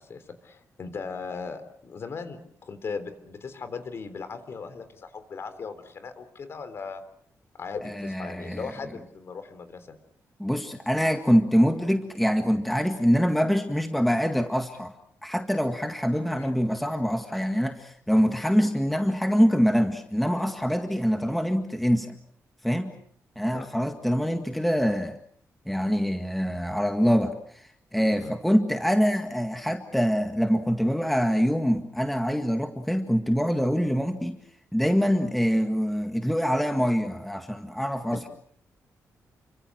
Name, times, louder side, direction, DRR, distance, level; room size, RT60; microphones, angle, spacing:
voice 1, 0.0-7.0 7.6-10.0 16.3-16.6 18.8-19.0 21.2-21.3 23.5-23.7 28.2-28.3 38.1-38.2, left 5 dB, 45° left, 10 dB, 3.7 m, -38 dB
voice 2, 7.8-8.7 10.4-14.9 15.2-22.2 22.6-23.0 23.4-25.2 25.7-34.4 34.7-38.3, equal, ahead, 5 dB, 1.9 m, -24 dB
30.0 x 25.0 x 6.3 m, 0.63 s
wide cardioid pair, 150°, 6 cm